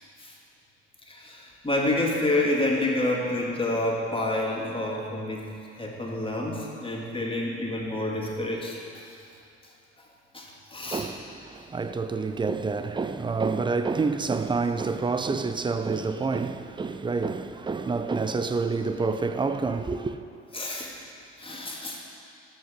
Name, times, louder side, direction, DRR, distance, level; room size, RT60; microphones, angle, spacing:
voice 1, 1.1-5.5 5.8-8.8 10.3-11.1 20.5-20.9 21.4-22.0, left 1 dB, 15° left, 2.3 m, -28 dB
voice 2, 10.8-20.2, right 4 dB, 15° right, 0.6 m, -28 dB
13.0 x 5.9 x 6.0 m
hypercardioid pair, 55°, 35 cm